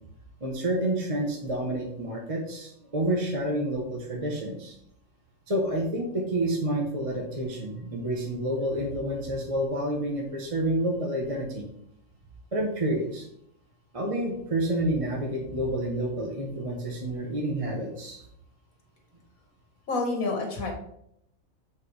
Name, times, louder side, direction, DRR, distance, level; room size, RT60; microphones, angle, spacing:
voice 1, 0.4-4.8 5.5-11.6 12.5-13.3 13.9-18.3, right 1 dB, 25° right, 0 dB, 1.0 m, -29 dB
voice 2, 19.9-20.7, left 3 dB, 80° left, 2 dB, 2.0 m, -28 dB
7.9 x 4.5 x 3.3 m, 0.73 s
omnidirectional pair, 1.5 m